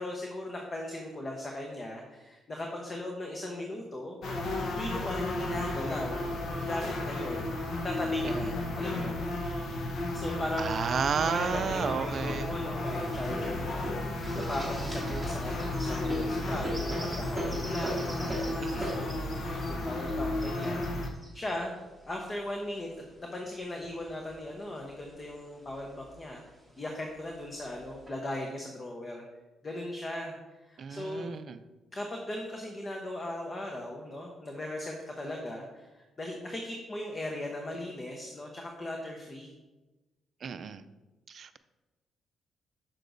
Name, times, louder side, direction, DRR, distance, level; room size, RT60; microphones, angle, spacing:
voice 1, 0.0-4.2 4.6-7.5 7.8-9.2 10.1-10.8 11.2-20.9 21.3-21.8 22.0-26.4 26.8-29.2 29.6-30.4 30.6-31.3 31.9-39.5, left 1 dB, 30° left, 1 dB, 0.9 m, -38 dB
sound 1, 4.2-21.1, left 1 dB, 60° left, 0.8 m, -33 dB
voice 2, 10.6-12.5 18.6-19.0 30.8-31.6 40.4-40.8 41.3-41.6, right 6 dB, 55° right, 12 dB, 0.4 m, -32 dB
sound 2, 12.8-23.1 23.8-24.7 25.1-25.2 25.5-26.2 26.9-27.0 27.7-28.1, equal, ahead, 2.3 m, -40 dB
7.5 x 6.7 x 2.6 m, 1.1 s
cardioid pair, 90°, 0 cm